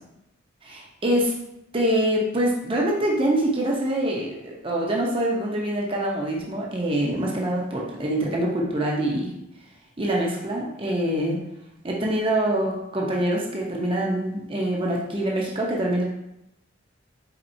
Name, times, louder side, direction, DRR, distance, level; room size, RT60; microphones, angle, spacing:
voice 1, 0.6-1.4 1.7-9.3 10.0-11.4 11.8-16.0, right 1 dB, 25° right, -2 dB, 0.6 m, -25 dB
4.3 x 3.9 x 2.6 m, 0.85 s
head